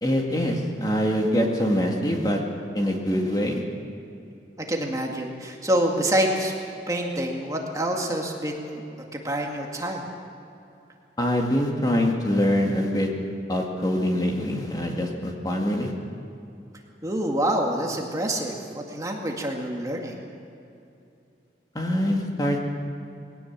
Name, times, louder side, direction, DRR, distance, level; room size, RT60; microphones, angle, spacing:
voice 1, 0.0-2.4 2.7-3.6 11.2-13.1 13.5-15.9 21.7-22.7, equal, 20° left, 1 dB, 2.1 m, -24 dB
voice 2, 4.7-6.5 6.9-8.8 9.1-10.0 17.0-20.2, right 1 dB, 20° right, 0 dB, 2.0 m, -27 dB
21.0 x 18.0 x 7.4 m, 2.7 s
head